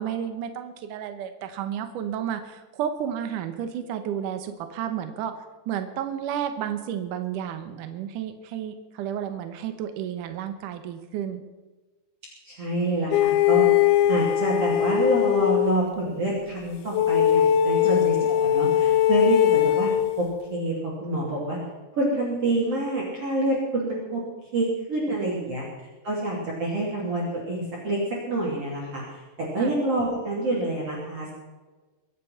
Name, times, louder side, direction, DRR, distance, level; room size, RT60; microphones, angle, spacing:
voice 1, 0.0-11.4 17.8-18.0 25.2-25.6 29.6-29.7, right 9 dB, 85° right, 8 dB, 1.8 m, -32 dB
voice 2, 12.4-13.7 14.1-19.9 20.2-21.6 21.9-24.2 24.5-25.6 26.0-31.3, right 1 dB, 35° right, -4 dB, 3.3 m, -27 dB
sound 1, 13.1-15.7 16.9-20.2, left 11 dB, 85° left, 3.1 m, -20 dB
23.5 x 8.3 x 5.7 m, 1.2 s
omnidirectional pair, 5.2 m